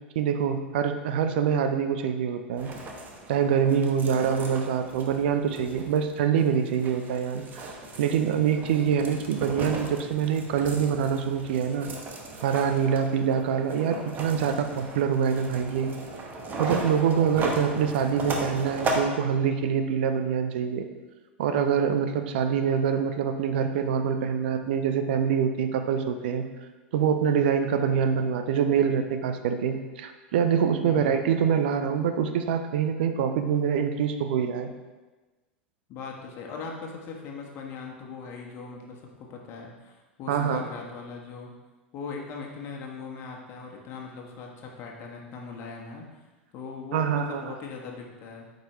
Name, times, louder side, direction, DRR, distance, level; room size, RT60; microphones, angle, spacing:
voice 1, 0.2-2.7 3.3-7.7 8.0-11.9 12.4-15.9 16.6-20.9 21.4-26.5 26.9-34.7 40.3-40.7 46.9-47.5, right 7 dB, 60° right, 7 dB, 0.6 m, -25 dB
sound 1, 2.6-19.0, right 2 dB, 30° right, 1.0 m, -36 dB
voice 2, 30.8-31.2 35.9-41.5 41.9-46.2 46.5-48.6, left 4 dB, 40° left, 0 dB, 1.4 m, -40 dB
8.8 x 5.3 x 3.2 m, 1.2 s
figure-of-eight pair, 85°, 6 cm